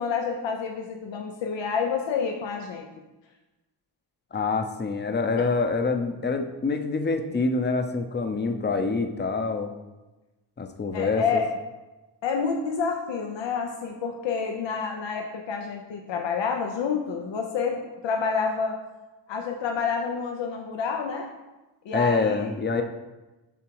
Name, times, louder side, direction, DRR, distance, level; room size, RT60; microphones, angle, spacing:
voice 1, 0.0-2.9 10.9-11.5 12.2-18.8 19.3-21.3 21.8-22.5, left 5 dB, 80° left, 3 dB, 0.7 m, -28 dB
voice 2, 4.3-9.7 10.6-11.4 21.9-22.8, left 4 dB, 25° left, 6 dB, 0.6 m, -26 dB
7.1 x 3.7 x 4.7 m, 1.1 s
cardioid pair, 70°, 43 cm